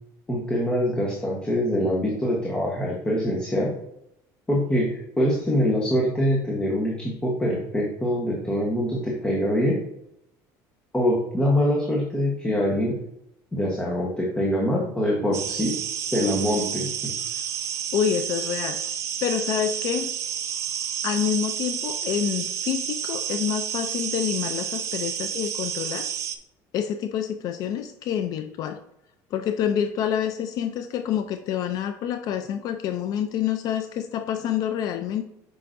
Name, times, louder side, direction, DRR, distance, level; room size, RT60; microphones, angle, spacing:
voice 1, 0.3-3.7 4.5-9.8 10.9-13.0 13.5-15.8 16.1-16.9, equal, 10° left, -3 dB, 1.2 m, -24 dB
sound 1, 15.3-26.4, right 9 dB, 35° right, 0.6 m, -30 dB
voice 2, 17.9-18.8 19.2-20.1 21.0-26.1 26.7-28.8 29.3-35.2, left 9 dB, 50° left, 8 dB, 0.5 m, -27 dB
7.7 x 5.8 x 2.6 m, 0.78 s
cardioid pair, 145°, 8 cm